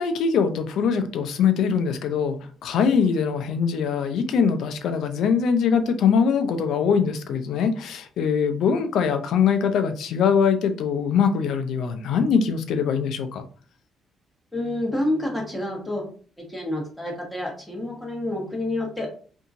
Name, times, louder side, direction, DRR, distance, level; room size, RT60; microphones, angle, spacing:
voice 1, 0.0-2.4 2.6-13.4, left 6 dB, 75° left, 8 dB, 0.4 m, -22 dB
voice 2, 14.5-16.0 16.5-19.1, left 1 dB, 10° left, -1 dB, 1.2 m, -28 dB
2.7 x 2.6 x 2.6 m, 0.42 s
cardioid pair, 90°, 0 cm